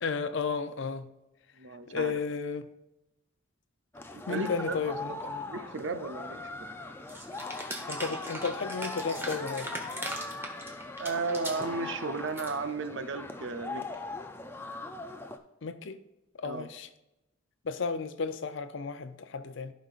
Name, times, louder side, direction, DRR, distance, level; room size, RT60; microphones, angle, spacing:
voice 1, 0.0-1.1 1.9-2.7 4.3-5.4 7.9-9.7 15.6-16.0 16.4-16.9 17.6-19.7, left 5 dB, 60° left, 0.5 m, -33 dB
voice 2, 1.6-2.2 4.1-5.2 5.5-6.5 11.0-13.9 16.4-16.7, right 3 dB, 60° right, 0.5 m, -34 dB
sound 1, 3.9-15.4, left 2 dB, 10° left, 0.4 m, -40 dB
sound 2, 7.1-11.7 12.1-12.5, right 1 dB, 10° right, 1.0 m, -39 dB
15.0 x 5.3 x 2.5 m
head